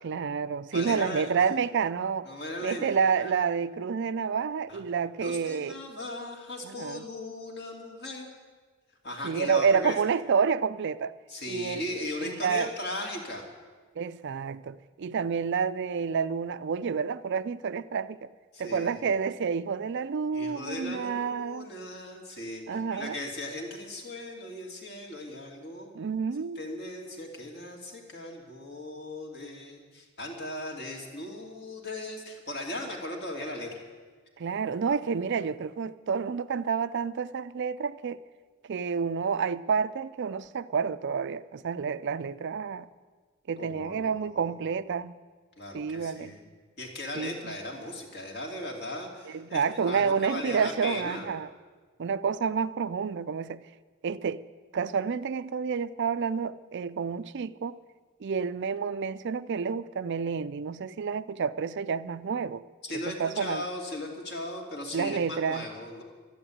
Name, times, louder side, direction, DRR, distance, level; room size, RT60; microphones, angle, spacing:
voice 1, 0.0-2.3 2.6-5.7 6.6-7.0 9.2-11.1 11.5-12.7 14.0-18.3 18.6-21.7 22.7-23.2 26.0-26.6 34.4-38.2 38.7-42.9 43.5-45.1 45.7-46.4 47.2-47.6 49.3-51.5 52.0-53.6 54.0-54.4 54.7-57.8 58.2-62.6 62.9-63.6 64.9-65.7, right 6 dB, 55° right, 0.4 m, -29 dB
voice 2, 0.7-1.3 2.3-3.3 4.7-4.8 5.2-8.3 9.0-10.0 11.3-13.4 18.5-19.0 20.3-25.9 26.5-33.8 43.6-44.7 45.6-46.4 46.8-51.3 62.8-66.0, left 1 dB, 50° left, 2.6 m, -38 dB
12.5 x 11.0 x 8.7 m
head